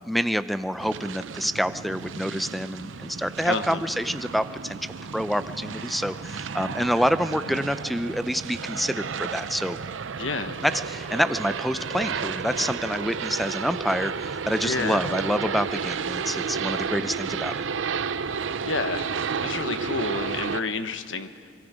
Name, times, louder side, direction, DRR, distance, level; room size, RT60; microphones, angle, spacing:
voice 1, 0.0-4.8 5.1-9.8 10.6-17.6, equal, ahead, 13 dB, 0.5 m, -27 dB
sound 1, 0.8-20.6, right 6 dB, 80° right, 0.6 m, -32 dB
voice 2, 3.4-3.8 7.5-7.6 10.2-10.6 14.6-15.0 18.6-19.1 19.4-21.5, left 4 dB, 85° left, 10 dB, 1.2 m, -30 dB
25.0 x 23.0 x 5.0 m, 2.2 s
head